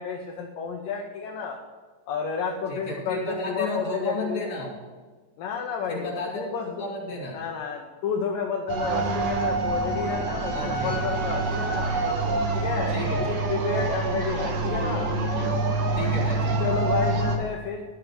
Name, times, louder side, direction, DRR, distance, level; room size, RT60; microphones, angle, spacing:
voice 1, 0.0-1.6 2.1-4.5 5.4-6.9 7.3-15.1 16.6-17.8, left 5 dB, 80° left, 1 dB, 2.0 m, -31 dB
voice 2, 2.7-4.7 5.9-7.4 10.5-11.3 12.9-13.4 15.9-16.7, left 2 dB, 45° left, -3 dB, 3.7 m, -33 dB
sound 1, 8.7-17.4, right 3 dB, 80° right, 1.4 m, -26 dB
12.5 x 6.5 x 6.3 m, 1.4 s
omnidirectional pair, 5.0 m